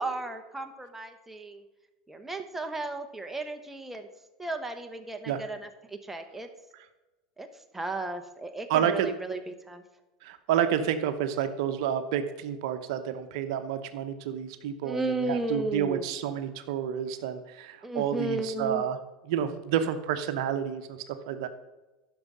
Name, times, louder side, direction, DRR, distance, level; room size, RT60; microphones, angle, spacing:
voice 1, 0.0-1.6 2.1-4.1 4.4-6.5 7.4-7.5 7.7-9.8 14.8-16.1 17.8-18.8, right 2 dB, 10° right, 6 dB, 1.0 m, -34 dB
voice 2, 8.7-9.1 10.2-19.0 19.3-21.5, right 9 dB, 70° right, 9 dB, 0.8 m, -29 dB
10.5 x 6.1 x 5.4 m, 1.1 s
hypercardioid pair, 100°, 3 cm